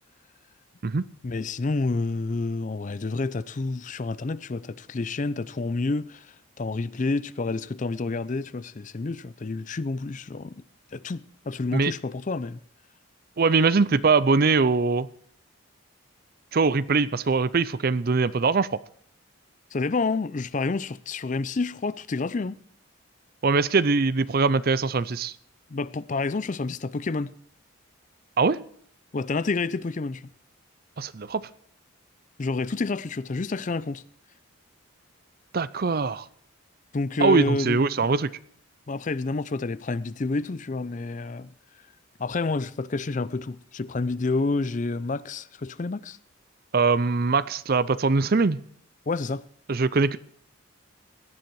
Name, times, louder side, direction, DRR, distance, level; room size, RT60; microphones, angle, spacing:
voice 1, 1.2-10.6 10.9-12.6 19.7-22.6 25.7-27.3 29.1-30.3 32.4-34.0 36.9-37.8 38.9-41.5 42.2-46.2 49.1-49.5, left 3 dB, 35° left, 0.4 m, -29 dB
voice 2, 13.4-15.1 16.5-18.8 23.4-25.3 28.4-28.6 31.0-31.5 35.5-36.3 37.2-38.3 46.7-48.6 49.7-50.2, right 4 dB, 45° right, 0.5 m, -22 dB
17.0 x 10.5 x 4.7 m
head